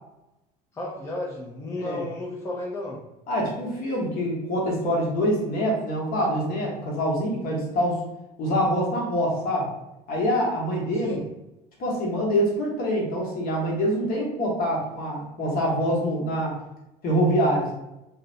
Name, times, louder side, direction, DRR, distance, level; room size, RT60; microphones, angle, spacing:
voice 1, 0.7-3.0 10.9-11.2, left 2 dB, 15° left, -3 dB, 0.5 m, -33 dB
voice 2, 3.3-8.0 8.4-9.7 10.1-11.2 11.8-16.6 17.0-17.7, equal, 55° left, -3 dB, 1.0 m, -25 dB
2.5 x 2.1 x 2.6 m, 0.93 s
supercardioid pair, 95°, 18 cm